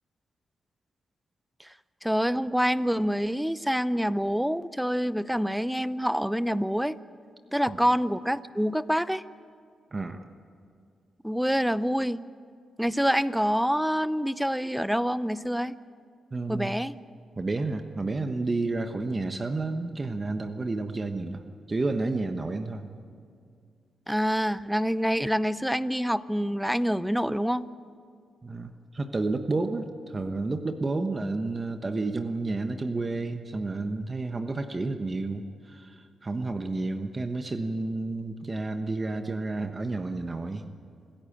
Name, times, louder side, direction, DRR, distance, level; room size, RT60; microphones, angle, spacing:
voice 1, 2.0-7.0 7.5-9.2 11.2-12.3 12.8-15.7 16.5-16.9 24.1-27.6, equal, ahead, 16 dB, 0.6 m, -26 dB
voice 2, 9.9-10.2 16.3-16.7 17.4-21.4 21.7-22.9 28.4-40.6, right 3 dB, 30° right, 7 dB, 1.1 m, -31 dB
26.5 x 14.5 x 8.7 m, 2.3 s
cardioid pair, 80°, 0 cm